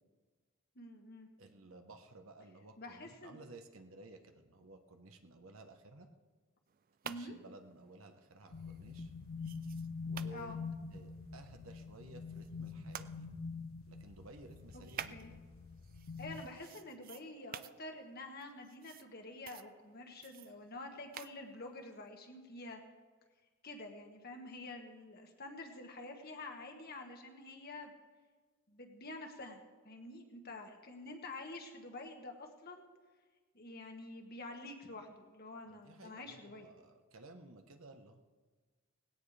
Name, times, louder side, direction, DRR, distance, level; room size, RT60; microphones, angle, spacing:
voice 1, 0.8-1.3 2.8-3.4 7.0-7.4 10.3-10.6 15.1-15.3 16.2-22.8 23.6-27.9 28.7-32.9 33.5-36.7, left 2 dB, 45° left, 3 dB, 1.7 m, -48 dB
voice 2, 1.4-6.1 7.0-9.1 10.0-10.6 10.9-13.4 13.9-15.4 35.6-38.2, right 2 dB, 75° right, 5 dB, 1.2 m, -55 dB
sound 1, 6.7-13.1 13.6-22.1, right 9 dB, 40° right, 0.4 m, -53 dB
sound 2, 8.5-16.5, left 5 dB, 70° left, 0.7 m, -45 dB
19.0 x 17.0 x 3.4 m, 1.4 s
head